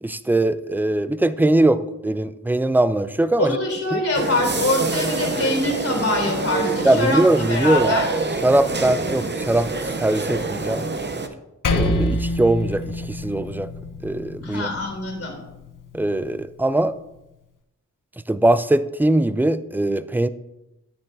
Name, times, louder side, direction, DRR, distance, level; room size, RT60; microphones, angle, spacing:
voice 1, 0.0-3.6 3.9-4.0 6.8-7.9 8.4-9.7 10.0-10.9 11.7-13.7 14.0-14.7 15.9-16.9 18.3-20.3, right 1 dB, 5° right, 14 dB, 0.3 m, -21 dB
voice 2, 3.4-7.2 7.5-8.1 14.4-15.4, left 2 dB, 45° left, 1 dB, 2.8 m, -23 dB
sound 1, 4.1-11.3, right 3 dB, 35° right, 0.7 m, -26 dB
Percussion, 11.6-16.4, left 2 dB, 75° left, 0.8 m, -27 dB
9.5 x 9.1 x 2.6 m, 0.93 s
wide cardioid pair, 75°, 32 cm